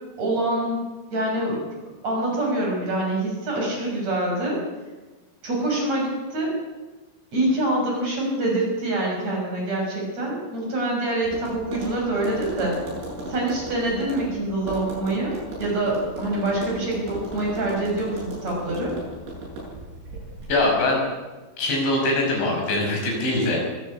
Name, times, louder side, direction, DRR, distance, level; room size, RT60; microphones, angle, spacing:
voice 1, 0.2-0.8 1.1-1.6 2.0-4.6 5.4-6.5 7.3-12.8 13.3-15.3 15.6-18.9, right 1 dB, 35° right, -1 dB, 7.2 m, -25 dB
Tap, 11.2-20.5, right 1 dB, 85° right, 10.5 m, -36 dB
voice 2, 20.5-21.0 21.6-23.6, left 2 dB, 80° left, 0 dB, 8.0 m, -22 dB
22.5 x 14.5 x 8.6 m, 1.2 s
omnidirectional pair, 5.2 m